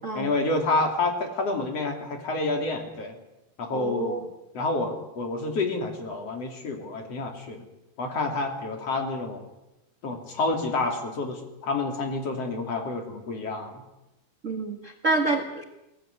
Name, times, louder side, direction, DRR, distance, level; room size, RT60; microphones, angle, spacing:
voice 1, 0.2-3.2 3.6-4.3 4.5-7.6 8.0-9.4 10.0-13.8, left 2 dB, 45° left, 4 dB, 3.7 m, -29 dB
voice 2, 3.7-4.2 14.4-15.6, right 2 dB, 40° right, 4 dB, 1.0 m, -27 dB
22.0 x 18.0 x 9.8 m, 0.95 s
omnidirectional pair, 4.1 m